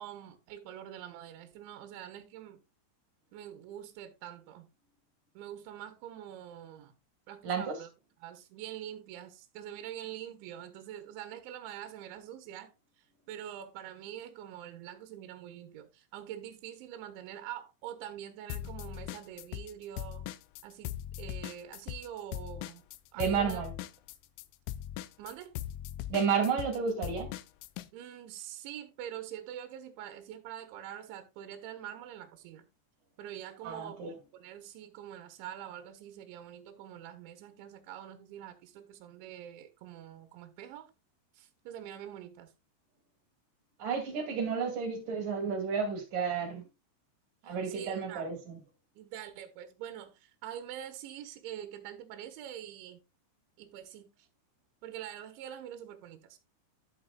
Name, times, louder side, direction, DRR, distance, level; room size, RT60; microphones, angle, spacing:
voice 1, 0.0-2.6 3.3-4.7 5.3-6.9 7.3-7.9 8.2-12.7 13.0-20.3 20.6-22.8 23.1-23.6 25.2-25.6 27.9-32.7 33.2-40.9 41.3-42.5 47.4-48.3 49.0-53.0 53.6-54.3 54.8-56.4, right 11 dB, 75° right, 3.3 m, -45 dB
voice 2, 7.4-7.8 23.2-23.7 26.1-27.3 33.6-34.1 43.8-46.6 47.4-48.6, right 6 dB, 50° right, 3.5 m, -31 dB
sound 1, 18.5-19.7 20.0-27.9, left 12 dB, 85° left, 3.1 m, -40 dB
11.5 x 8.6 x 2.3 m
omnidirectional pair, 5.5 m